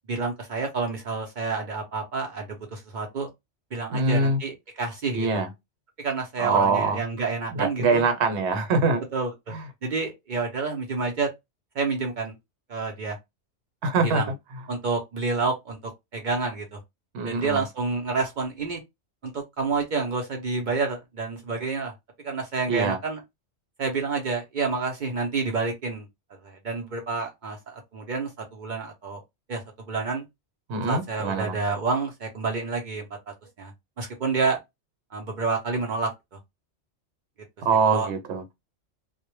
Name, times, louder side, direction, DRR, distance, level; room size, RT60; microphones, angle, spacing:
voice 1, 0.1-3.3 3.7-5.3 6.0-8.1 9.1-9.6 9.8-11.3 11.8-12.3 12.7-13.2 14.0-14.3 14.7-15.8 16.1-16.8 17.2-18.8 19.2-21.9 22.2-23.2 23.8-26.1 26.4-29.2 29.5-30.2 30.9-33.1 33.6-33.7 34.0-34.6 35.1-36.1 37.8-38.1, right 4 dB, 55° right, 0.5 m, -29 dB
voice 2, 3.9-4.4 5.1-5.5 6.4-7.0 7.5-9.0 9.5-9.6 13.8-14.2 17.1-17.6 22.7-23.0 30.7-31.6 37.6-38.4, right 3 dB, 75° right, 1.0 m, -23 dB
2.1 x 2.1 x 3.0 m
omnidirectional pair, 1.2 m